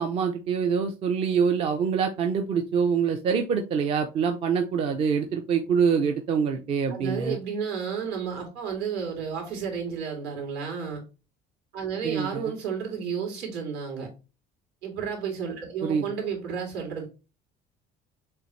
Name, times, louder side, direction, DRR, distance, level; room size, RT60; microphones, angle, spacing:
voice 1, 0.0-7.4 12.0-12.4 15.8-16.0, right 6 dB, 30° right, 6 dB, 0.4 m, -25 dB
voice 2, 6.9-11.0 11.7-14.1 14.8-17.1, right 6 dB, 65° right, 0 dB, 2.6 m, -32 dB
6.8 x 2.5 x 3.1 m, 0.30 s
cardioid pair, 175°, 19 cm